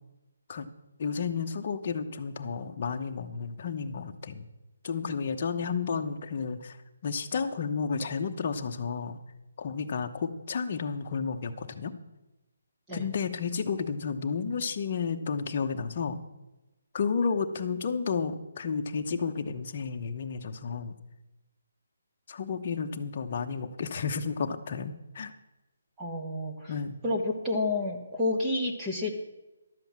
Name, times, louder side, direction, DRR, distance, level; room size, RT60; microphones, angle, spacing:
voice 1, 1.0-4.5 4.8-6.8 7.0-9.2 9.6-11.9 12.9-16.2 16.9-20.9 22.3-25.3 26.7-27.0, left 5 dB, 35° left, 4 dB, 0.9 m, -32 dB
voice 2, 26.0-26.7 27.0-29.2, left 2 dB, 10° right, -2 dB, 1.1 m, -30 dB
12.0 x 7.6 x 7.4 m, 1.0 s
hypercardioid pair, 170°, 0 cm